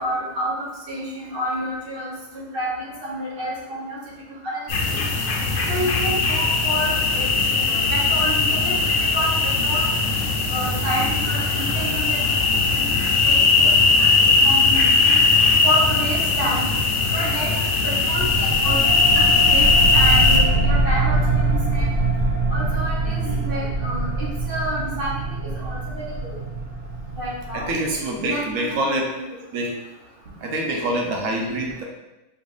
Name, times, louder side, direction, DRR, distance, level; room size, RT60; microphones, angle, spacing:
voice 1, 0.0-2.1 2.5-4.0 4.4-4.6 4.9-5.0 5.7-9.3 9.6-9.9 10.5-12.2 13.2-13.7 14.2-15.2 15.6-16.7 17.1-17.5 17.8-18.8 19.1-19.7 19.9-21.9 22.5-25.1 25.5-26.0 27.2-27.7 28.2-29.0, right 1 dB, 45° right, -5 dB, 1.3 m, -29 dB
sound 1, 4.7-20.4, left 4 dB, 70° left, 1.0 m, -19 dB
voice 2, 16.1-16.5 23.0-23.5 27.5-29.1 29.5-29.7 30.4-31.8, right 1 dB, 80° right, 0 dB, 1.1 m, -26 dB
sound 2, 18.1-28.3, right 2 dB, 65° right, 1.0 m, -24 dB
4.7 x 3.3 x 2.6 m, 0.99 s
omnidirectional pair, 1.4 m